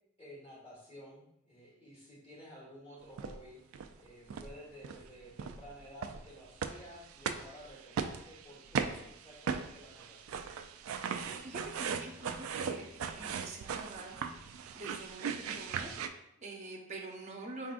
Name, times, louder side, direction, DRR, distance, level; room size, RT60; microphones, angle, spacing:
voice 1, 0.2-10.5, equal, 25° left, -7 dB, 1.7 m, -53 dB
sound 1, 3.2-3.4 3.7-4.0 4.3-4.5 4.8-5.0 5.4-16.1, right 6 dB, 85° right, 0.3 m, -38 dB
voice 2, 11.0-17.7, right 2 dB, 35° right, 0 dB, 0.6 m, -46 dB
5.0 x 3.6 x 2.5 m, 0.78 s
head